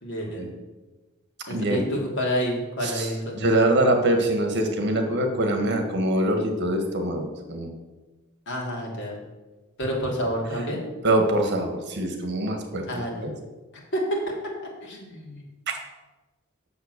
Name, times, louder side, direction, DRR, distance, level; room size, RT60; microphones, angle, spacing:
voice 1, 0.0-0.5 1.5-3.5 8.5-9.2 9.8-10.9 12.9-13.2 13.9-14.5 14.8-15.4, equal, 60° left, -2 dB, 2.7 m, -29 dB
voice 2, 1.5-1.8 2.8-3.1 3.3-7.7 11.0-12.9 13.2-13.3 15.7-15.8, right 1 dB, 55° right, 4 dB, 1.6 m, -24 dB
8.1 x 7.0 x 6.6 m, 1.2 s
head